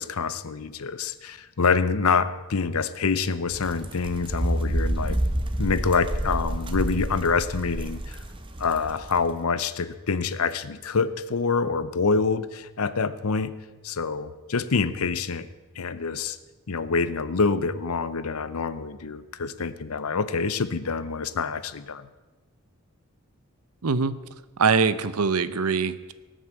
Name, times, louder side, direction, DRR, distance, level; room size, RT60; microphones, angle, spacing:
voice 1, 0.0-5.2 5.6-8.2 8.6-13.5 13.8-15.5 15.8-16.4 16.7-22.1, left 4 dB, 85° left, 15 dB, 0.7 m, -26 dB
sound 1, 3.5-9.2, right 1 dB, 20° right, 1.0 m, -29 dB
voice 2, 23.8-24.1 24.6-26.1, right 5 dB, 85° right, 15 dB, 0.7 m, -23 dB
18.0 x 6.5 x 7.7 m, 1.2 s
head